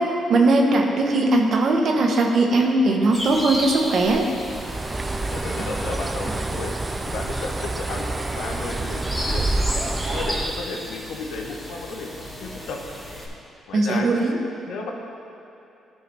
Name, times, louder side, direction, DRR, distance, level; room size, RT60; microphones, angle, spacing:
voice 1, 0.0-4.3 13.7-14.4, right 2 dB, 60° right, 2 dB, 0.9 m, -19 dB
sound 1, 3.1-13.3, equal, 5° left, 1.5 m, -34 dB
Bird, 4.4-10.7, right 2 dB, 25° right, 0.3 m, -28 dB
voice 2, 5.3-6.7 7.0-9.5 10.1-12.1 12.4-12.8 13.7-14.1 14.7-14.9, left 3 dB, 80° left, 1 dB, 0.8 m, -33 dB
12.0 x 4.8 x 3.3 m, 2.8 s
cardioid pair, 90°, 0 cm